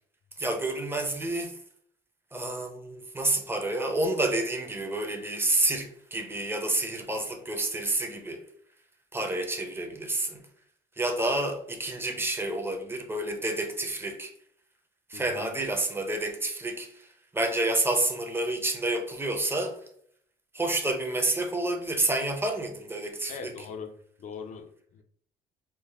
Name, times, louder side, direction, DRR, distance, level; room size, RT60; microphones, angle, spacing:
voice 1, 0.4-1.6 2.3-8.4 9.1-10.4 11.0-14.3 15.1-16.9 17.3-19.8 20.5-23.5, right 2 dB, 15° right, 0.7 m, -29 dB
voice 2, 15.1-15.6 23.3-25.0, left 6 dB, 50° left, 0.5 m, -41 dB
4.5 x 2.0 x 3.4 m
cardioid pair, 110°, 17 cm